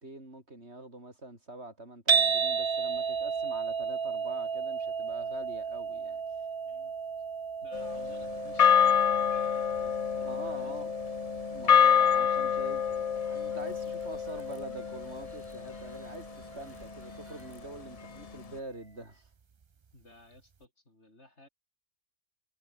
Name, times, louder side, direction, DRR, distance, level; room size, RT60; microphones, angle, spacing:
voice 1, 0.0-6.2 10.2-10.9 11.5-19.3, right 2 dB, 65° right, 6.0 m, -45 dB
sound 1, 2.1-18.3, right 6 dB, 40° right, 0.4 m, -35 dB
voice 2, 6.6-7.0 7.6-10.8 16.0-16.1 19.9-21.5, left 1 dB, 65° left, 6.2 m, -57 dB
sound 2, 7.7-16.2, left 8 dB, 50° left, 0.4 m, -27 dB
sound 3, 13.3-19.2, equal, 10° right, 8.1 m, -61 dB
omnidirectional pair, 1.2 m